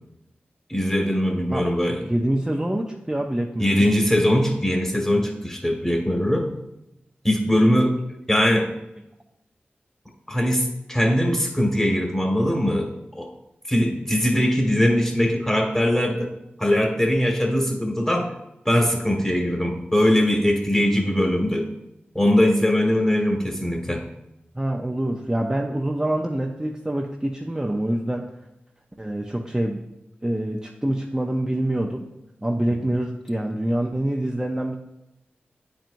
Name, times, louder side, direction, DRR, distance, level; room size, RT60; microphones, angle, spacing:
voice 1, 0.7-2.0 3.6-6.5 7.2-8.0 8.3-8.7 10.3-13.3 13.7-16.3 16.6-18.3 18.6-21.7 22.1-24.0, equal, 10° left, 1 dB, 1.6 m, -21 dB
voice 2, 2.0-3.9 24.6-28.2 29.0-29.8 30.2-32.1 32.4-34.8, right 1 dB, 15° right, 0 dB, 0.6 m, -25 dB
9.1 x 4.4 x 2.6 m, 0.89 s
cardioid pair, 50°, 4 cm